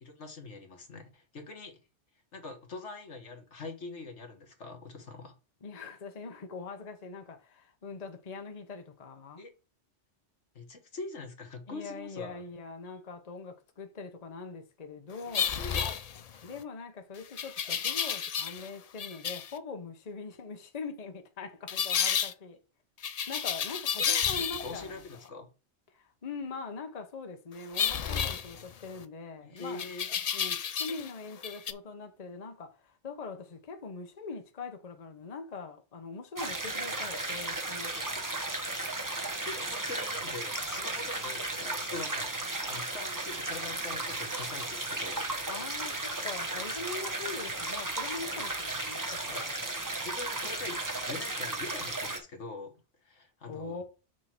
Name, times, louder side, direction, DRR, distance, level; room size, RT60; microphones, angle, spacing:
voice 1, 0.0-1.8 2.3-5.3 9.4-9.5 10.6-12.4 15.2-16.0 16.3-16.4 24.1-25.5 29.4-30.1 39.5-45.3 48.3-48.4 49.2-49.5 50.0-50.8 51.1-53.8, left 3 dB, 80° left, 1.8 m, -43 dB
voice 2, 5.6-9.5 11.7-15.6 16.4-22.6 23.3-25.0 25.9-29.9 30.3-38.2 45.5-49.6 53.5-53.8, left 4 dB, 40° left, 0.9 m, -42 dB
sound 1, 15.3-16.5 17.4-18.7 19.0-19.5 21.7-22.3 23.0-24.9 27.7-29.0 29.8-31.1 31.4-31.7, left 8 dB, 55° left, 0.4 m, -31 dB
sound 2, 36.4-52.2, right 2 dB, 20° right, 0.9 m, -35 dB
6.3 x 3.8 x 5.9 m
omnidirectional pair, 1.2 m